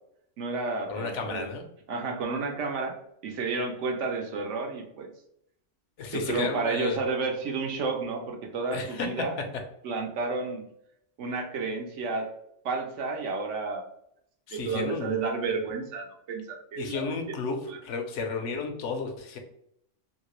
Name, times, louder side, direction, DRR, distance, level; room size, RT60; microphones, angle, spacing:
voice 1, 0.4-1.5 1.9-3.0 3.2-5.1 6.1-9.4 9.8-10.6 11.2-12.3 12.6-13.8 14.5-17.1 17.7-17.8, right 4 dB, 75° right, 3 dB, 1.0 m, -31 dB
voice 2, 0.9-1.6 6.0-7.0 8.7-9.2 14.5-15.2 16.8-19.4, left 4 dB, 75° left, 5 dB, 0.9 m, -33 dB
2.9 x 2.7 x 3.0 m, 0.72 s
omnidirectional pair, 1.3 m